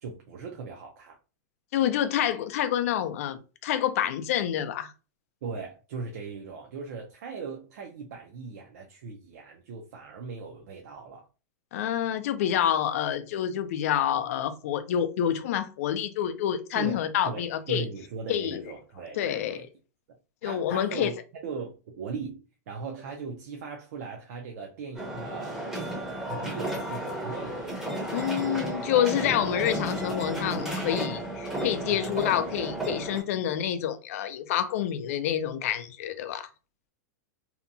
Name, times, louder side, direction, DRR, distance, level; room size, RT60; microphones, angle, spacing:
voice 1, 0.0-1.2 5.4-11.3 16.7-19.7 20.4-21.1 21.4-22.4 22.7-25.6 26.3-27.8, right 5 dB, 55° right, 0.5 m, -39 dB
voice 2, 1.7-4.9 11.7-17.9 18.3-18.6 19.1-19.6 20.4-21.1 28.1-36.5, left 10 dB, 50° left, 0.4 m, -28 dB
sound 1, 25.0-33.2, right 1 dB, 5° right, 0.7 m, -33 dB
2.8 x 2.2 x 2.5 m
supercardioid pair, 165°, 10 cm